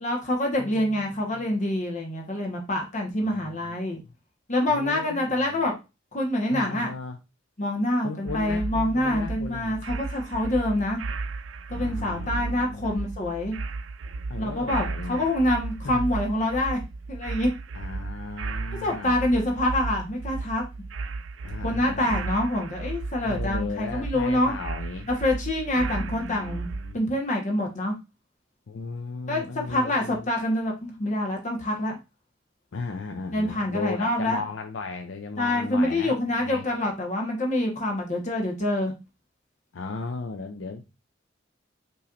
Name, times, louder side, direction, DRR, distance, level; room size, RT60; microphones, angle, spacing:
voice 1, 0.0-4.0 4.5-5.7 6.1-6.9 7.6-11.0 11.7-13.6 14.4-16.8 17.1-17.5 18.8-20.6 21.6-24.6 25.1-28.0 29.3-32.0 33.3-34.4 35.4-38.9, left 1 dB, 40° left, 1 dB, 1.2 m, -26 dB
voice 2, 0.6-1.5 3.2-3.8 4.0-4.1 4.7-5.7 6.5-7.2 8.0-9.8 11.7-13.0 14.3-15.3 15.8-16.0 17.7-19.1 21.4-22.3 23.2-25.1 25.7-27.0 28.7-30.3 32.7-36.6 39.7-40.9, left 4 dB, 75° left, 5 dB, 0.5 m, -36 dB
sound 1, 8.3-26.9, right 3 dB, 85° right, 0.4 m, -34 dB
5.7 x 3.1 x 2.5 m, 0.26 s
head